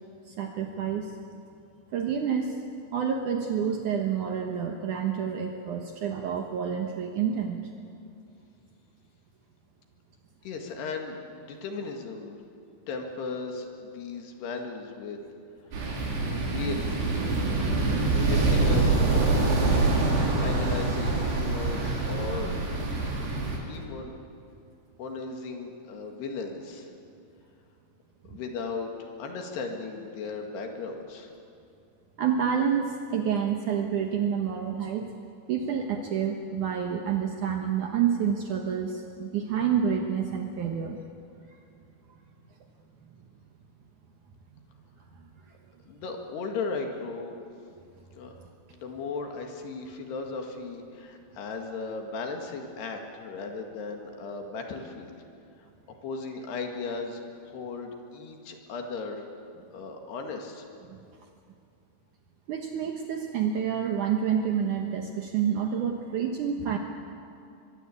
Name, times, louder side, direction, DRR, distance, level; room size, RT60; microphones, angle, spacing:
voice 1, 0.2-1.1 1.9-2.5 2.9-7.6 32.2-35.1 35.5-41.0 60.9-61.0 62.5-66.8, right 7 dB, 75° right, 3 dB, 1.8 m, -28 dB
voice 2, 10.4-12.4 12.9-15.2 16.4-17.1 18.1-20.0 20.4-22.5 23.5-24.1 25.0-26.9 28.3-31.3 45.9-47.3 48.1-48.4 48.7-55.2 56.0-59.2 59.7-60.7, left 4 dB, 65° left, 3 dB, 3.8 m, -36 dB
sound 1, 15.7-23.6, right 3 dB, 60° right, 6.0 m, -25 dB
24.0 x 22.5 x 8.5 m, 2.5 s
omnidirectional pair, 5.4 m